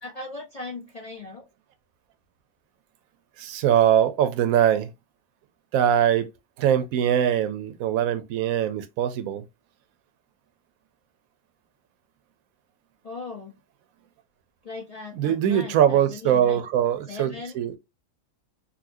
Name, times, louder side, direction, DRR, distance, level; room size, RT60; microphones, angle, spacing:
voice 1, 0.0-1.5 13.0-13.5 14.6-16.6 17.1-17.6, left 3 dB, 40° left, 0.5 m, -38 dB
voice 2, 3.4-4.9 5.7-6.3 6.6-9.4 15.1-17.8, right 10 dB, 80° right, 1.0 m, -22 dB
4.1 x 2.3 x 2.5 m
omnidirectional pair, 1.5 m